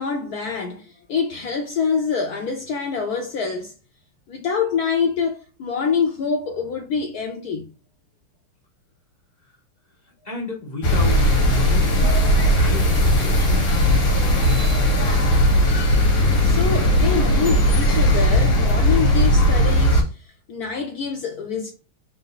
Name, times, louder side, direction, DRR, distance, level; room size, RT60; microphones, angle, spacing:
voice 1, 0.0-3.7 4.3-7.7 16.4-21.7, left 5 dB, 85° left, 0.8 m, -26 dB
voice 2, 10.0-14.6, left 2 dB, 30° left, 0.9 m, -34 dB
sound 1, 10.8-20.0, equal, 55° left, 1.6 m, -17 dB
3.6 x 2.7 x 4.0 m
omnidirectional pair, 2.3 m